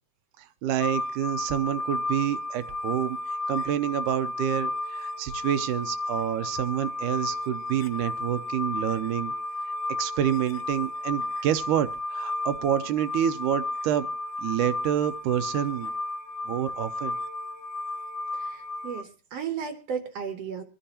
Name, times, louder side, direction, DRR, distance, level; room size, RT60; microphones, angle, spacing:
voice 1, 0.4-3.2 3.5-9.3 10.0-14.1 14.4-15.9 16.5-17.2, right 10 dB, 85° right, 11 dB, 2.3 m, -28 dB
sound 1, 0.8-19.0, left 2 dB, 75° left, 1.5 m, -33 dB
voice 2, 18.3-20.6, right 7 dB, 65° right, 9 dB, 1.9 m, -34 dB
24.5 x 10.0 x 2.9 m, 0.35 s
omnidirectional pair, 3.6 m